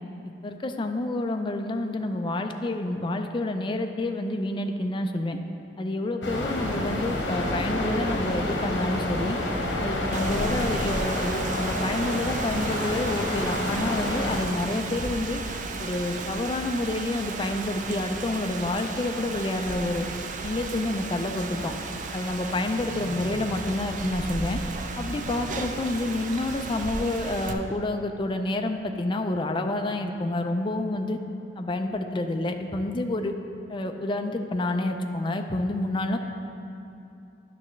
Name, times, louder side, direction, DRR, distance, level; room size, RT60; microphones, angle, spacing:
voice 1, 0.4-5.4 5.8-9.4 9.8-15.4 15.8-20.1 20.4-21.7 22.1-24.6 25.0-31.2 31.6-33.3 33.7-36.2, left 2 dB, 25° left, 5 dB, 0.4 m, -28 dB
sound 1, 6.2-14.4, left 1 dB, 85° left, 1.0 m, -29 dB
Rain, 10.1-27.5, right 3 dB, 45° right, 0.4 m, -34 dB
10.0 x 6.2 x 3.1 m, 2.7 s
head